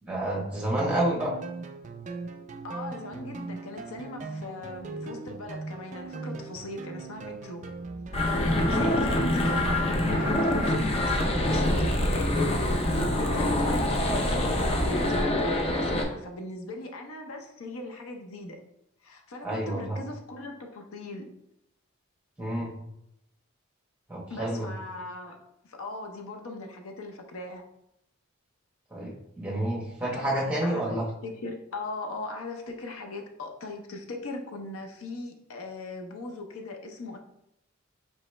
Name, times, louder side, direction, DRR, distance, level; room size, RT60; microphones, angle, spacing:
voice 1, 0.0-1.3 8.6-9.0 19.4-20.0 22.4-22.7 24.1-24.7 28.9-31.1, right 1 dB, 5° right, -4 dB, 1.0 m, -29 dB
sound 1, 0.8-14.5, right 3 dB, 35° right, 0.3 m, -39 dB
voice 2, 2.6-7.6 8.2-18.6 19.0-21.3 24.3-25.4 25.6-27.6 30.1-37.2, left 2 dB, 80° left, 4 dB, 0.6 m, -39 dB
sound 2, 8.1-16.0, left 1 dB, 30° left, 0.5 m, -25 dB
4.6 x 3.0 x 3.2 m, 0.79 s
head